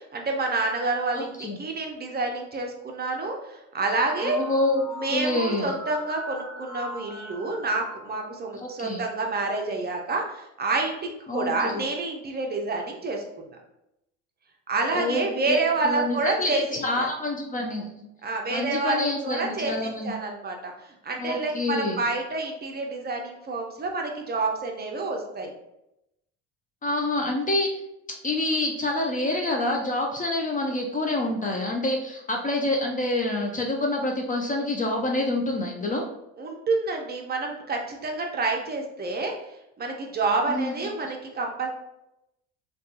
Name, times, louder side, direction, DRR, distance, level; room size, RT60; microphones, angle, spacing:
voice 1, 0.0-4.4 4.9-13.5 14.7-17.1 18.2-25.5 36.4-39.3 39.8-41.7, right 3 dB, 30° right, 2 dB, 0.5 m, -28 dB
voice 2, 1.1-1.6 4.2-5.8 8.5-9.0 11.3-11.8 14.9-18.1 18.5-20.1 21.2-22.0 26.8-27.7 28.2-36.0 40.5-40.7 41.0-41.1, left 2 dB, 25° left, 1 dB, 0.4 m, -27 dB
sound 1, 3.9-9.0, left 1 dB, 60° left, 0.6 m, -41 dB
2.6 x 2.3 x 2.4 m, 0.85 s
supercardioid pair, 75°, 34 cm